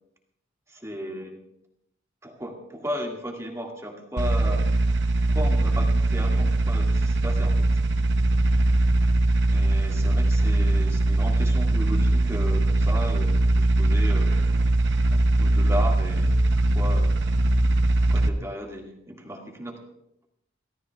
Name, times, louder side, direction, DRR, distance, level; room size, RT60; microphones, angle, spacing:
voice 1, 0.7-1.3 2.2-4.6 5.3-7.7 9.5-14.3 15.1-16.4 16.7-17.2 18.0-19.8, equal, 15° right, 0 dB, 2.1 m, -35 dB
sound 1, 4.2-18.3, right 2 dB, 60° right, 0.8 m, -21 dB
29.0 x 13.5 x 2.4 m, 0.79 s
head